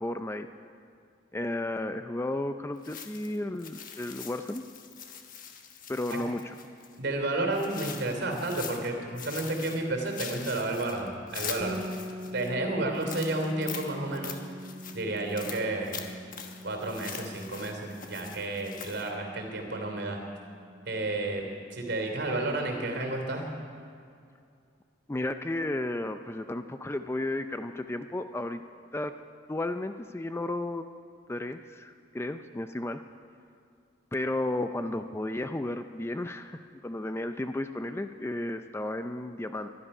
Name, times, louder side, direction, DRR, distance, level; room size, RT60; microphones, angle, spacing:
voice 1, 0.0-0.5 1.3-4.6 5.9-6.4 25.1-28.6 28.9-29.1 29.5-30.8 31.3-33.0 34.1-39.7, left 1 dB, 15° left, 9 dB, 0.4 m, -33 dB
sound 1, 2.8-7.0 7.5-8.9 9.2-12.5 12.9-19.1, left 7 dB, 45° left, 1.3 m, -43 dB
voice 2, 7.0-11.9 12.2-14.4 14.9-16.1 16.6-20.2 20.8-23.5, right 2 dB, 65° right, 3 dB, 3.0 m, -31 dB
sound 2, 11.6-21.3, equal, 20° right, 1.2 m, -44 dB
23.0 x 11.5 x 5.5 m, 2.4 s
head